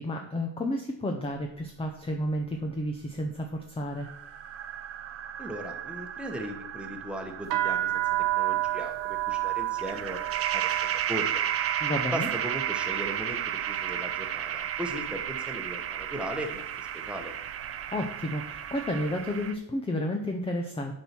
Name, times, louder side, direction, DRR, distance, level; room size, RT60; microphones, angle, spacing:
voice 1, 0.0-4.1 11.8-12.3 17.7-20.9, left 1 dB, 15° left, 3 dB, 0.7 m, -31 dB
sound 1, 4.0-19.5, right 9 dB, 35° right, 0.5 m, -34 dB
voice 2, 5.4-8.0 8.3-10.2 10.5-11.4 12.1-17.3, equal, 5° right, 2 dB, 1.3 m, -38 dB
sound 2, 7.4-15.4 15.6-16.3 16.9-17.2 17.5-18.9, right 15 dB, 90° right, 0.8 m, -32 dB
8.7 x 4.7 x 6.0 m, 0.79 s
cardioid pair, 145°, 42 cm